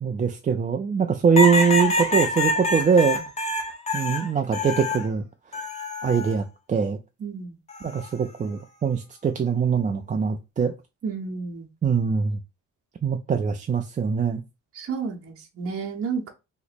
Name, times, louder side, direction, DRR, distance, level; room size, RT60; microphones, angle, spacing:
voice 1, 0.0-3.3 3.9-5.2 5.5-5.6 6.0-7.0 7.8-10.7 11.8-12.4 13.0-14.4, right 6 dB, 25° right, 0.3 m, -23 dB
sound 1, 1.4-5.1 5.5-6.3 7.7-8.1, left 2 dB, 20° left, 0.8 m, -26 dB
voice 2, 7.2-7.5 11.0-11.7 14.7-16.3, right 5 dB, 50° right, 0.9 m, -31 dB
2.9 x 2.0 x 4.1 m
cardioid pair, 100°, 30 cm